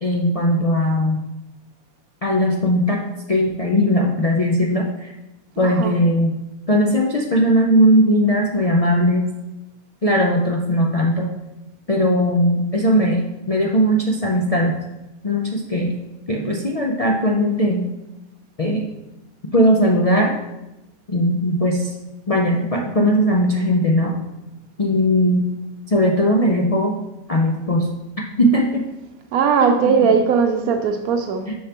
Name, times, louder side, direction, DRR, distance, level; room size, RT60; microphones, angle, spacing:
voice 1, 0.0-1.2 2.2-3.0 3.3-5.1 5.6-6.3 6.7-9.3 10.0-11.3 11.9-14.8 15.2-15.9 16.3-17.9 18.6-18.9 19.5-20.4 21.1-21.9 22.3-24.2 24.8-25.5 25.9-27.0 27.3-27.9 28.2-28.8 29.6-30.2 31.5-31.6, equal, 50° left, -1 dB, 0.4 m, -18 dB
voice 2, 5.6-5.9 29.3-31.5, right 6 dB, 85° right, 5 dB, 1.1 m, -18 dB
6.6 x 5.4 x 2.9 m, 0.94 s
omnidirectional pair, 1.5 m